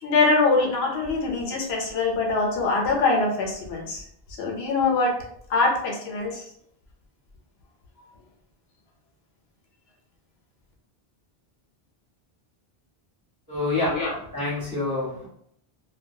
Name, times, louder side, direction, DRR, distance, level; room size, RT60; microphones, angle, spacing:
voice 1, 0.0-4.0 4.4-5.1 5.5-6.5 13.7-14.1, left 3 dB, 85° left, 0 dB, 0.8 m, -23 dB
voice 2, 13.5-14.0 14.3-15.3, left 2 dB, 20° left, -7 dB, 1.1 m, -27 dB
2.2 x 2.2 x 2.6 m, 0.69 s
omnidirectional pair, 1.0 m